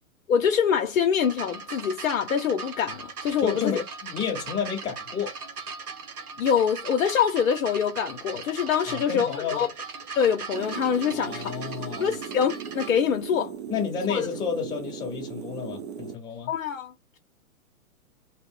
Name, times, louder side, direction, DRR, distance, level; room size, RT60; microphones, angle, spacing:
voice 1, 0.3-3.8 6.4-9.7 10.1-11.5 12.0-13.5 14.1-14.3 16.5-16.9, left 7 dB, 65° left, 0.6 m, -25 dB
sound 1, 1.2-12.9 13.8-13.9, right 5 dB, 80° right, 0.8 m, -39 dB
voice 2, 3.4-5.3 8.9-9.7 11.1-12.1 13.7-16.5, left 7 dB, 10° left, 0.7 m, -31 dB
sound 2, 10.5-16.2, right 7 dB, 50° right, 0.6 m, -38 dB
2.5 x 2.0 x 3.4 m
figure-of-eight pair, 120°, 44 cm